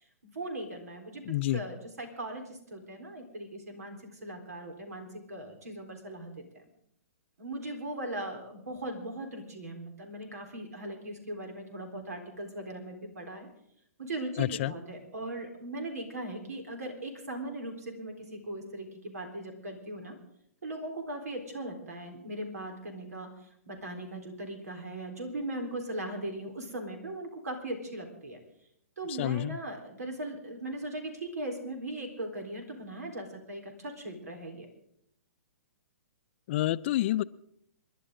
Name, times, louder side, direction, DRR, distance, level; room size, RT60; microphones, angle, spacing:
voice 1, 0.3-1.2 1.5-6.6 7.4-13.5 14.0-20.1 20.6-23.3 23.7-28.4 29.0-34.7, right 1 dB, 80° right, 4 dB, 4.0 m, -39 dB
voice 2, 1.3-1.6 14.4-14.7 29.2-29.6 36.5-37.2, left 15 dB, 50° left, 16 dB, 0.5 m, -28 dB
27.5 x 11.0 x 3.8 m, 0.73 s
hypercardioid pair, 130°, 8 cm